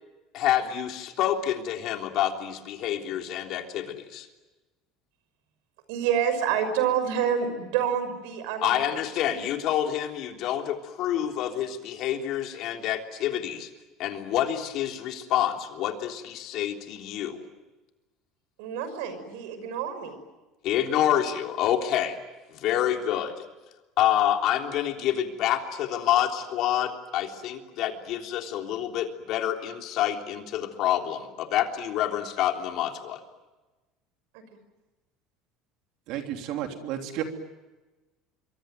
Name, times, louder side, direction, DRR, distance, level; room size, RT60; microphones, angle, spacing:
voice 1, 0.3-4.3 8.6-13.7 14.0-17.5 20.6-22.2 22.5-23.4 24.0-33.2, left 11 dB, 55° left, 3 dB, 3.4 m, -27 dB
voice 2, 5.9-8.7 9.3-9.4 18.6-20.1, right 8 dB, 85° right, 10 dB, 6.0 m, -27 dB
voice 3, 36.1-37.2, right 11 dB, 65° right, 4 dB, 3.3 m, -32 dB
26.0 x 24.5 x 9.2 m, 1.1 s
cardioid pair, 140°, 0 cm